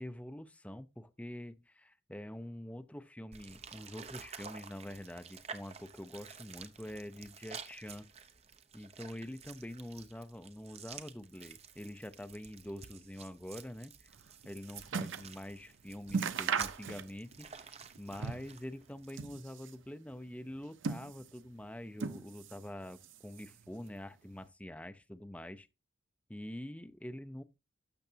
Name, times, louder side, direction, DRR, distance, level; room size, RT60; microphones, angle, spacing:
voice 1, 0.0-8.1 8.7-14.1 14.4-17.7 18.0-25.7 26.3-27.4, left 1 dB, 5° left, 0.5 m, -46 dB
sound 1, 3.3-19.3, right 6 dB, 30° right, 0.8 m, -51 dB
sound 2, 14.2-15.4 15.7-15.8 16.1-17.4 17.7-18.6 19.0-19.8 20.5-21.5 22.0-22.7 23.0-23.7 24.4-24.5, right 5 dB, 75° right, 0.7 m, -38 dB
12.0 x 7.2 x 2.8 m
head